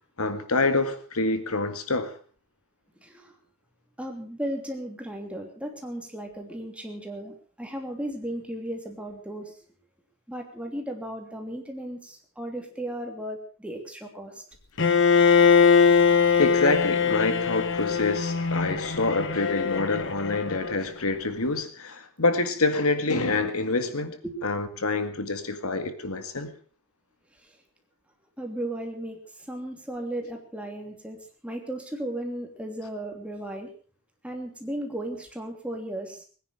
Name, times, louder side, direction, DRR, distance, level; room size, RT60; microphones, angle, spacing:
voice 1, 0.2-2.1 16.4-26.5, left 3 dB, 75° left, 1.9 m, -26 dB
voice 2, 4.0-9.5 10.3-14.3 24.2-24.4 28.4-29.2 29.5-31.2 31.4-33.7 34.2-36.2, right 1 dB, 5° right, 3.0 m, -35 dB
Bowed string instrument, 14.8-20.8, left 6 dB, 55° left, 1.5 m, -21 dB
20.5 x 10.0 x 6.4 m
head